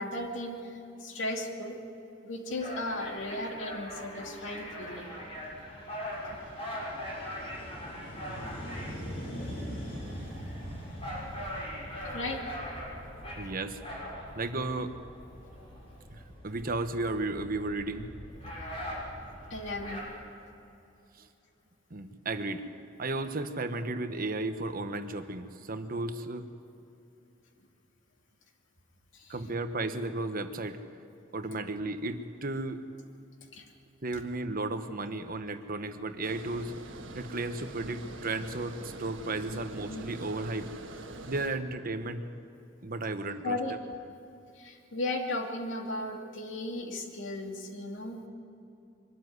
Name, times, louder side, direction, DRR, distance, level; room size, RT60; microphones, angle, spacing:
voice 1, 0.0-1.8 2.2-5.1 12.1-12.4 19.5-20.0 29.1-29.4 33.5-33.7 39.5-40.0 43.4-43.8 44.5-48.3, left 1 dB, 75° left, 2 dB, 2.4 m, -36 dB
sound 1, 2.5-20.0, equal, 30° left, 6.7 m, -40 dB
voice 2, 13.4-13.8 14.3-14.9 16.1-18.1 21.2-21.3 21.9-22.7 23.0-26.5 29.3-30.8 31.3-32.8 34.0-36.7 37.1-40.7 41.3-42.3 42.8-43.6, right 2 dB, 50° right, 9 dB, 1.1 m, -34 dB
Water, 36.2-41.5, right 2 dB, 80° right, 1.4 m, -44 dB
23.5 x 13.0 x 9.5 m, 2.8 s
head